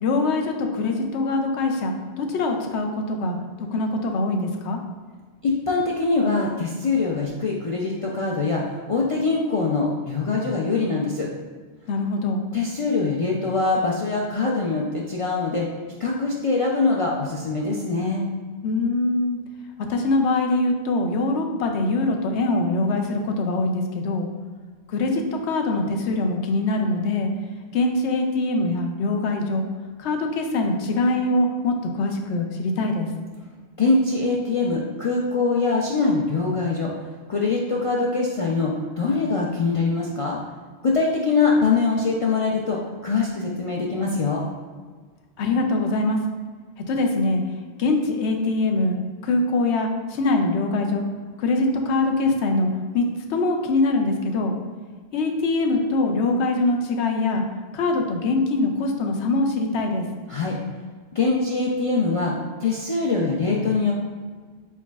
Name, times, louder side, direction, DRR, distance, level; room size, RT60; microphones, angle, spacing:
voice 1, 0.0-3.4 3.7-4.8 11.9-12.4 18.6-19.4 19.9-24.3 24.9-27.3 27.7-29.6 30.0-33.1 45.4-46.2 46.9-47.4 47.8-49.0 49.2-51.0 51.4-52.7 52.9-54.5 55.1-57.4 57.7-60.1, left 2 dB, 90° left, 3 dB, 0.9 m, -23 dB
voice 2, 5.4-8.6 8.9-11.3 12.5-15.7 16.0-18.2 33.8-36.9 37.3-40.4 40.8-44.4 60.3-60.5 61.1-62.3 62.6-63.9, left 3 dB, 60° left, -3 dB, 0.3 m, -23 dB
4.6 x 4.0 x 2.3 m, 1.5 s
omnidirectional pair, 1.1 m